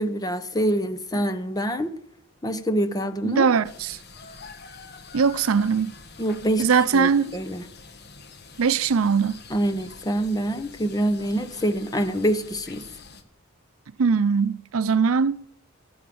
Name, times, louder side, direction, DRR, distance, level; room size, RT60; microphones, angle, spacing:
voice 1, 0.0-1.9 2.4-3.5 6.2-6.7 6.9-7.6 9.5-12.9, right 1 dB, 20° left, 0.8 m, -25 dB
voice 2, 3.2-4.0 5.1-5.9 6.6-7.4 8.6-9.4 14.0-15.4, right 5 dB, 85° right, 0.5 m, -21 dB
sound 1, 3.6-13.2, left 4 dB, 55° left, 1.3 m, -46 dB
15.0 x 7.1 x 8.6 m
head